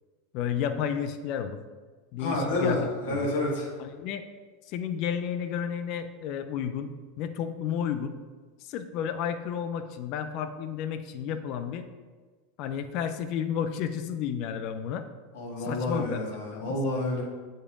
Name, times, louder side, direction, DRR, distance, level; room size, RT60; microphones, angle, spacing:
voice 1, 0.3-1.6 2.1-3.3 3.8-4.2 4.7-8.2 8.7-11.9 12.6-15.0 15.6-16.2 16.5-16.8, left 8 dB, 50° left, 9 dB, 0.6 m, -32 dB
voice 2, 2.2-3.7 15.3-17.2, left 2 dB, 65° left, -2 dB, 1.9 m, -29 dB
8.0 x 5.2 x 3.7 m, 1.4 s
hypercardioid pair, 90°, 0 cm